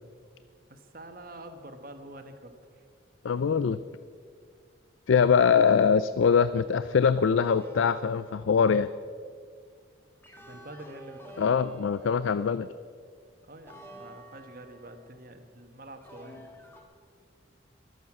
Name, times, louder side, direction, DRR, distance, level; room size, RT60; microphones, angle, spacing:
voice 1, 0.7-2.8 10.4-11.6 13.5-16.7, right 1 dB, 45° right, 7 dB, 1.3 m, -47 dB
voice 2, 3.2-3.8 5.1-8.9 11.4-12.7, left 6 dB, 80° left, 14 dB, 0.4 m, -23 dB
sound 1, 7.4-8.9 10.2-12.6 13.7-15.1 16.0-16.8, equal, 10° left, 1.6 m, -49 dB
23.0 x 8.1 x 6.0 m, 2.1 s
head